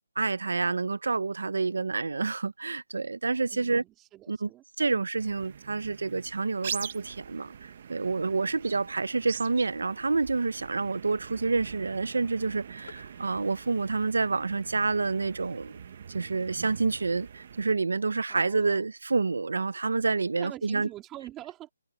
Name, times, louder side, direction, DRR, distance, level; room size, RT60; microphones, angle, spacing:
voice 1, 0.2-3.8 4.3-4.5 4.8-15.8 16.1-20.9, right 4 dB, 90° right, 0.8 m, -28 dB
voice 2, 3.5-4.6 18.3-18.9 20.4-21.7, right 14 dB, 10° right, 2.5 m, -45 dB
sound 1, 5.2-17.7, right 8 dB, 35° right, 1.0 m, -43 dB
sound 2, 12.8-18.4 18.7-18.8 19.1-19.4, left 4 dB, 70° left, 5.4 m, -58 dB
hypercardioid pair, 175°, 0 cm